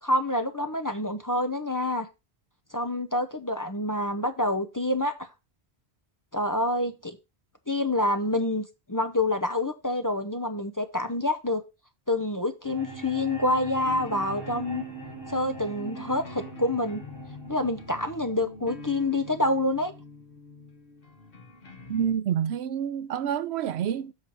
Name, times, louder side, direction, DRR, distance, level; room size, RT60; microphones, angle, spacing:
voice 1, 0.0-2.1 2.7-5.3 6.3-7.2 7.7-11.6 12.1-14.8 15.3-17.0 17.5-19.9, left 1 dB, 20° left, 0.6 m, -27 dB
sound 1, 12.6-18.6, right 4 dB, 25° right, 3.2 m, -42 dB
sound 2, 13.8-22.1, left 2 dB, 60° left, 1.5 m, -45 dB
voice 2, 21.9-24.1, right 9 dB, 85° right, 0.9 m, -28 dB
7.4 x 4.5 x 6.1 m
omnidirectional pair, 1.1 m